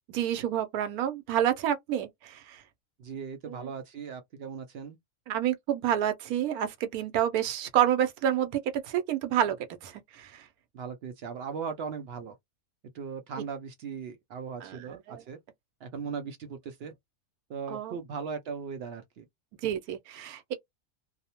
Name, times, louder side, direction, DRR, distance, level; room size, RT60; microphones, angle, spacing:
voice 1, 0.1-2.6 3.5-3.7 5.3-9.6 9.8-10.5 14.6-15.2 17.7-18.0 19.6-20.5, right 10 dB, 90° right, 1.1 m, -29 dB
voice 2, 3.0-5.0 10.7-12.4 12.9-15.4 15.8-16.9 17.5-19.2, right 6 dB, 70° right, 0.6 m, -38 dB
2.6 x 2.0 x 2.8 m
omnidirectional pair, 1.5 m